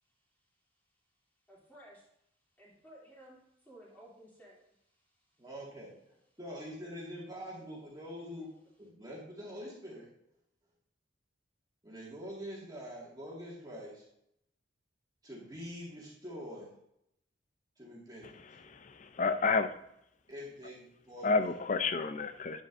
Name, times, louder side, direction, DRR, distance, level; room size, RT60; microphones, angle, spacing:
voice 1, 1.5-2.0 2.6-4.7 8.5-8.7, right 1 dB, 10° left, -6 dB, 2.8 m, -56 dB
voice 2, 5.4-5.9 6.4-8.5 8.8-10.1 11.8-14.1 15.2-16.7 17.8-18.4 20.3-21.5, equal, 20° right, -5 dB, 1.9 m, -45 dB
voice 3, 18.7-19.7 21.2-22.6, left 4 dB, 40° left, 10 dB, 0.5 m, -30 dB
9.3 x 7.5 x 2.6 m, 0.77 s
head